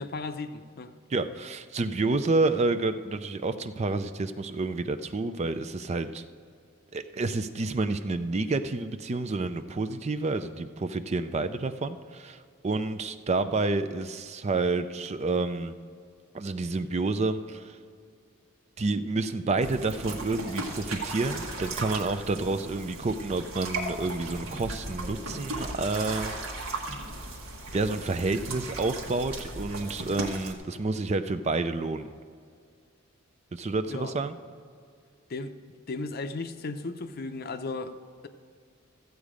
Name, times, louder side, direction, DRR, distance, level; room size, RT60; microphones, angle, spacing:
voice 1, 0.0-0.9 33.9-34.1 35.3-35.5 35.9-38.0, left 3 dB, 45° left, 0.6 m, -35 dB
voice 2, 1.1-6.2 6.9-15.7 16.3-17.8 18.8-26.3 26.7-27.0 27.7-32.1 33.5-34.4, right 3 dB, 30° right, 0.4 m, -29 dB
sound 1, 19.6-30.5, right 2 dB, 75° right, 1.5 m, -36 dB
13.5 x 8.2 x 5.0 m
head